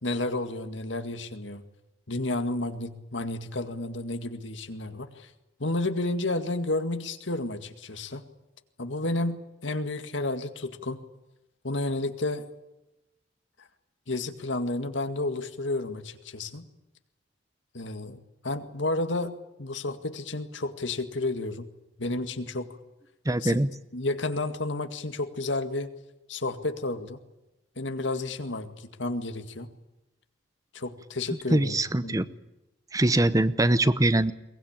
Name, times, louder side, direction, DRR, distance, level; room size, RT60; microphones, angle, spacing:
voice 1, 0.0-1.6 2.1-5.3 5.6-8.2 8.8-11.0 11.6-12.5 14.1-16.7 17.7-21.7 22.0-22.7 23.4-23.6 23.9-25.9 26.3-27.2 27.8-29.7 30.7-32.2, left 2 dB, 85° left, 8 dB, 2.0 m, -31 dB
voice 2, 23.3-23.7 31.5-32.3 32.9-34.3, right 1 dB, 20° right, 15 dB, 0.8 m, -22 dB
22.5 x 20.0 x 8.8 m, 0.96 s
head